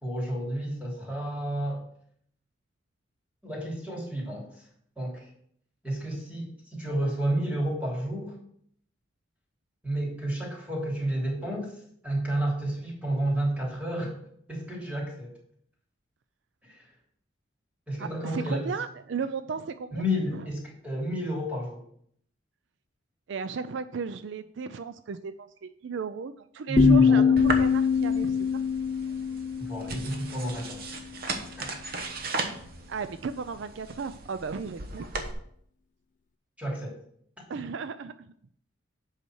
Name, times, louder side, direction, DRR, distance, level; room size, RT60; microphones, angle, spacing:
voice 1, 0.0-1.8 3.4-4.6 5.0-5.3 5.8-8.4 9.8-11.7 12.0-14.2 14.5-15.3 16.6-16.9 17.9-18.7 19.9-21.8 26.7-27.3 29.6-30.8 31.6-31.8 36.6-36.9, right 1 dB, 5° right, -4 dB, 3.1 m, -30 dB
voice 2, 18.0-20.0 20.3-20.5 23.3-28.7 32.9-35.1 37.5-38.3, right 5 dB, 65° right, 12 dB, 0.4 m, -35 dB
sound 1, 26.8-30.6, left 6 dB, 40° left, 0.4 m, -23 dB
sound 2, 27.4-35.3, right 3 dB, 50° right, 1.1 m, -37 dB
8.2 x 5.7 x 6.3 m, 0.66 s
head